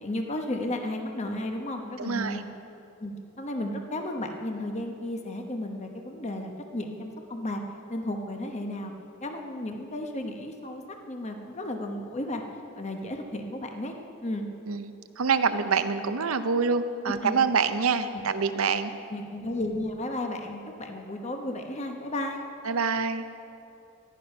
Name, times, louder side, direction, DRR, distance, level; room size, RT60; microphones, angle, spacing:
voice 1, 0.0-2.5 3.0-7.6 7.9-8.9 9.2-12.4 12.7-13.9 14.2-14.4 17.2-17.4 18.1-18.2 19.1-22.4, left 1 dB, 30° left, 4 dB, 1.0 m, -33 dB
voice 2, 2.0-2.4 14.7-18.9 22.6-23.2, right 5 dB, 80° right, 10 dB, 0.7 m, -26 dB
15.5 x 10.5 x 5.3 m, 2.7 s
head